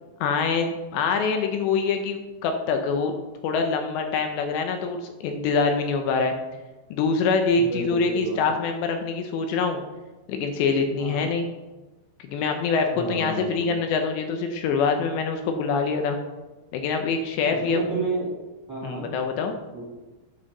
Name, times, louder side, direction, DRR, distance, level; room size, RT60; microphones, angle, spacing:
voice 1, 0.2-3.1 3.4-6.3 6.9-9.8 10.3-11.5 12.2-16.2 16.7-17.8 18.8-19.5, left 4 dB, 80° left, 5 dB, 2.9 m, -25 dB
voice 2, 7.6-8.5 11.0-11.3 12.9-13.8 17.7-18.3 18.7-19.1 19.7-19.8, right 3 dB, 40° right, -6 dB, 2.4 m, -31 dB
9.8 x 5.6 x 6.5 m, 1.1 s
omnidirectional pair, 5.3 m